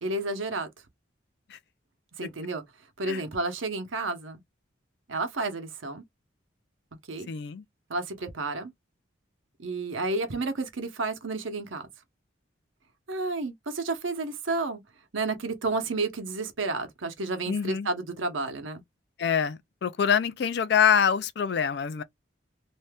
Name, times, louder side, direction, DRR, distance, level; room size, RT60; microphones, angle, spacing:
voice 1, 0.0-0.7 2.2-2.6 3.0-4.4 5.1-6.0 7.1-7.3 7.9-8.7 9.6-11.9 13.1-14.8 15.1-18.8, right 3 dB, 85° right, 0.8 m, -31 dB
voice 2, 7.3-7.6 17.5-17.9 19.2-22.0, left 7 dB, 55° left, 0.3 m, -25 dB
2.7 x 2.2 x 3.3 m
head